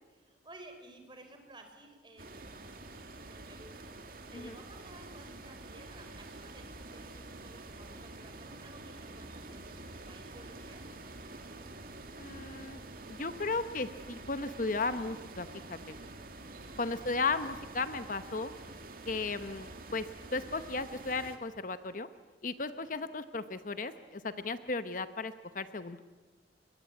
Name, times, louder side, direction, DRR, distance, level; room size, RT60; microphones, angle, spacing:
voice 1, 0.1-2.8 3.2-3.7 4.3-10.9 16.7-17.1 22.8-23.1, right 2 dB, 25° right, 6 dB, 4.2 m, -55 dB
sound 1, 2.2-21.4, right 2 dB, 55° right, 2.4 m, -47 dB
voice 2, 12.2-12.8 13.1-15.8 16.8-18.5 19.1-20.1 20.3-22.1 22.4-26.0, left 3 dB, 50° left, 11 dB, 1.0 m, -35 dB
29.5 x 22.5 x 8.4 m, 1.2 s
head